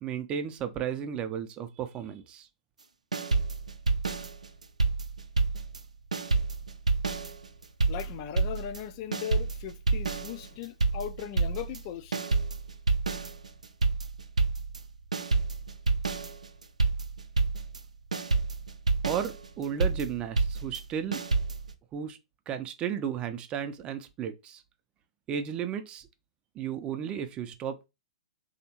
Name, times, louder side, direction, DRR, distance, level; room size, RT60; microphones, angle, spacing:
voice 1, 0.0-2.5 19.0-21.2 21.9-22.2 22.5-24.6 25.3-26.1 26.6-27.9, right 8 dB, 25° right, 0.5 m, -34 dB
sound 1, 3.1-5.8 6.1-21.7, right 3 dB, 85° right, 0.4 m, -29 dB
voice 2, 7.9-12.2, left 10 dB, 40° left, 0.3 m, -38 dB
3.3 x 2.8 x 2.8 m
figure-of-eight pair, 115°, 4 cm